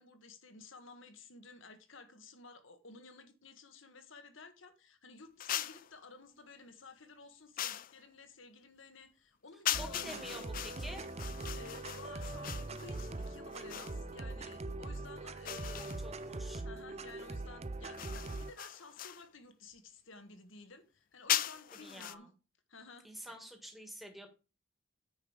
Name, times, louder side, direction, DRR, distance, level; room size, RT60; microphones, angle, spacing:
voice 1, 0.0-10.5 11.6-16.0 16.6-22.3 22.7-23.4, left 3 dB, 65° left, 1.5 m, -54 dB
sound 1, 5.4-5.9 7.6-8.0 9.7-14.0 15.5-16.3 18.0-19.3 21.3-22.2, left 12 dB, 40° left, 0.4 m, -39 dB
sound 2, 9.7-18.5, right 2 dB, 30° right, 0.6 m, -42 dB
voice 2, 9.8-11.1 15.4-16.6 21.8-22.3 23.0-24.3, equal, ahead, 1.8 m, -48 dB
9.5 x 5.4 x 5.0 m
head